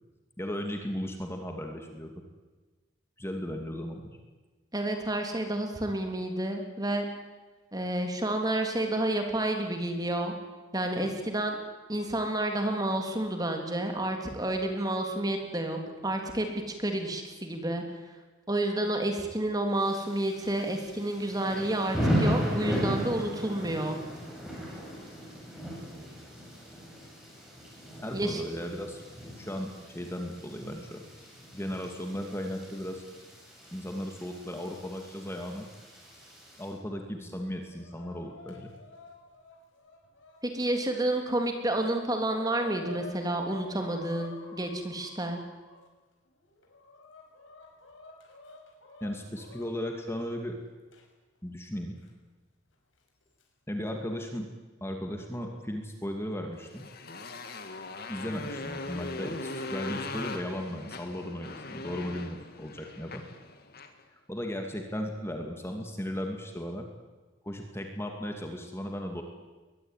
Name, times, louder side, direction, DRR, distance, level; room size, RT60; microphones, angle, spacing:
voice 1, 0.4-2.1 3.2-4.2 28.0-29.0 29.4-31.0 31.5-33.0 33.7-35.7 36.6-38.7 49.0-50.6 51.4-52.0 53.7-54.5 54.8-56.9 58.1-63.3 64.3-66.9 67.4-69.2, equal, 15° left, 3 dB, 2.5 m, -36 dB
voice 2, 4.7-7.0 7.7-10.3 10.7-11.6 11.9-17.8 18.5-24.0 28.1-28.4 40.4-45.4, right 1 dB, 20° right, 4 dB, 3.3 m, -30 dB
Thunder / Rain, 19.8-36.7, equal, ahead, 7.8 m, -36 dB
Chicken rooster, 37.4-40.8 41.4-41.5 41.7-45.8 46.4-49.7 50.9-51.0 52.0-52.1 53.1-53.4, left 2 dB, 90° left, 5.9 m, -49 dB
Motorcycle, 56.6-64.0, left 3 dB, 55° left, 2.4 m, -40 dB
22.5 x 20.5 x 9.3 m, 1.3 s
head